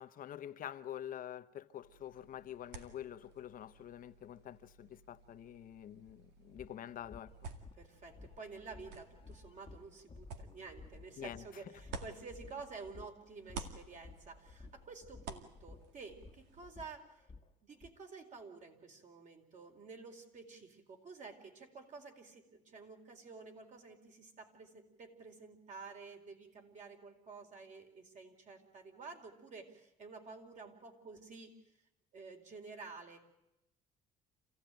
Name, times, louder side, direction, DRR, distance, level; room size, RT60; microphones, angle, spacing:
voice 1, 0.0-7.3 11.2-11.4, left 10 dB, 55° left, 0.9 m, -47 dB
sound 1, 1.8-13.0 13.3-16.7, right 4 dB, 90° right, 2.2 m, -52 dB
sound 2, 6.0-6.1 6.5-17.9, left 4 dB, 30° left, 1.2 m, -56 dB
voice 2, 7.8-17.2 17.6-31.5 32.1-33.2, right 4 dB, 45° right, 4.4 m, -51 dB
27.5 x 16.0 x 9.1 m
cardioid pair, 110°, 17 cm